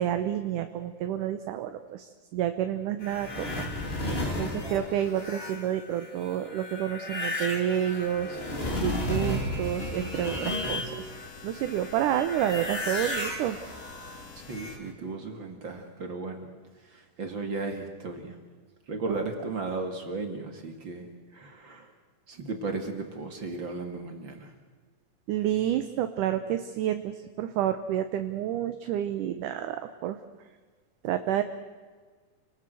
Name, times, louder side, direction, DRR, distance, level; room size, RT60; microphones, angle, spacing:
voice 1, 0.0-3.7 4.1-8.4 8.8-10.9 11.4-13.6 19.1-19.2 25.3-27.1 27.4-30.2 31.0-31.4, right 11 dB, 70° right, 8 dB, 2.2 m, -29 dB
sound 1, 3.0-11.3 11.5-14.9, left 1 dB, 15° left, 3.0 m, -33 dB
sound 2, 9.6-14.8, left 5 dB, 65° left, 3.3 m, -48 dB
voice 2, 14.4-16.5 16.8-18.4 18.9-21.9 22.3-24.5, right 3 dB, 40° right, 5 dB, 2.2 m, -35 dB
29.0 x 19.0 x 7.8 m, 1.5 s
omnidirectional pair, 4.2 m